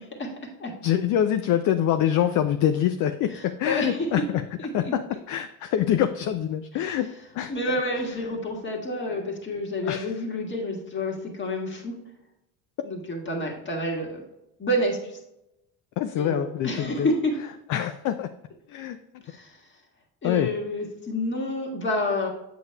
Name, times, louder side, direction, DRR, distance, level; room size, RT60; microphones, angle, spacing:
voice 1, 0.8-4.4 4.7-5.0 5.3-7.1 7.3-7.5 8.1-8.2 9.8-10.1 16.0-17.1 17.7-18.3 18.7-19.0 20.2-20.6, left 10 dB, 50° left, 9 dB, 0.4 m, -25 dB
voice 2, 3.3-4.1 4.6-4.9 6.7-6.8 7.5-11.9 12.8-14.2 14.6-15.2 16.2-17.3 19.3-19.6 20.2-22.3, left 1 dB, 30° left, 0 dB, 1.7 m, -29 dB
7.7 x 6.6 x 2.3 m, 0.88 s
supercardioid pair, 95°, 41 cm